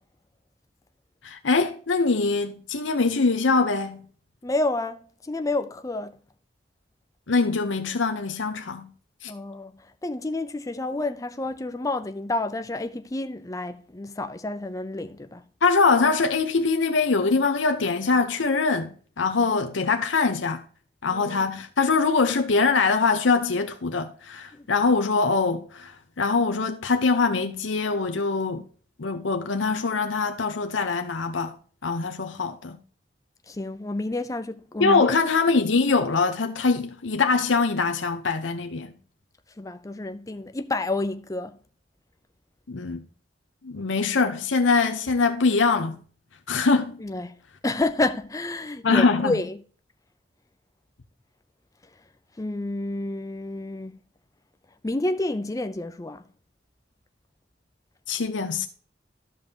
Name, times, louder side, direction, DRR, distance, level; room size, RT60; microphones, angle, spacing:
voice 1, 1.2-4.0 7.3-8.9 9.2-9.3 15.6-20.6 21.0-28.6 29.0-31.6 31.8-32.8 34.8-38.9 42.7-43.0 43.6-46.0 46.5-47.0 48.8-49.3 58.1-58.7, left 4 dB, 85° left, 0.8 m, -23 dB
voice 2, 4.4-6.2 9.3-9.7 10.0-15.4 21.1-21.4 24.5-24.7 33.5-35.1 39.6-41.6 47.0-47.3 47.6-49.6 52.4-54.0 54.8-56.2, left 2 dB, 20° left, 0.5 m, -29 dB
13.5 x 5.3 x 2.8 m
head